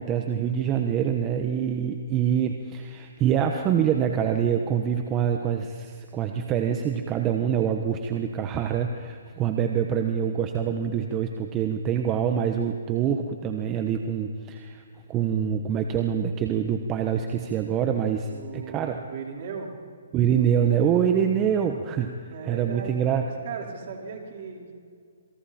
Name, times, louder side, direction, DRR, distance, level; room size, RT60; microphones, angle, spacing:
voice 1, 0.0-14.8 15.1-19.0 20.1-23.2, right 8 dB, 20° right, 5 dB, 1.2 m, -25 dB
voice 2, 18.3-19.7 22.3-23.0 23.4-24.7, right 5 dB, 45° right, 1 dB, 4.6 m, -37 dB
27.5 x 23.5 x 4.4 m, 2.2 s
hypercardioid pair, 150°, 0 cm